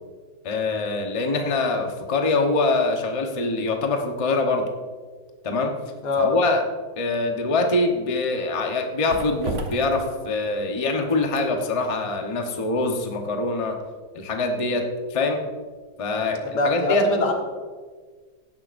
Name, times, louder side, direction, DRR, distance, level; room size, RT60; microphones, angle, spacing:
voice 1, 0.4-4.6 5.4-5.7 6.2-6.6 7.0-13.8 14.1-14.8 15.1-15.4 16.0-17.1, left 3 dB, 25° left, 2 dB, 0.9 m, -24 dB
voice 2, 6.0-6.3 16.4-17.3, left 3 dB, 75° left, 1 dB, 2.2 m, -23 dB
sound 1, 7.8-15.8 16.1-16.3, right 1 dB, 40° right, 1.3 m, -39 dB
16.5 x 11.0 x 2.6 m, 1.5 s
omnidirectional pair, 1.8 m